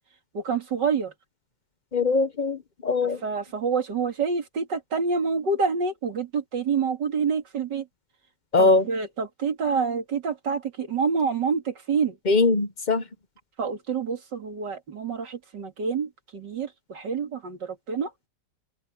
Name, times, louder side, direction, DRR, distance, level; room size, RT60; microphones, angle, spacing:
voice 1, 0.3-1.1 3.0-7.8 8.6-12.2 13.6-18.1, right 5 dB, 70° right, 3.0 m, -27 dB
voice 2, 1.9-3.2 8.5-8.8 12.3-13.0, left 3 dB, 40° left, 0.6 m, -21 dB
omnidirectional pair, 2.0 m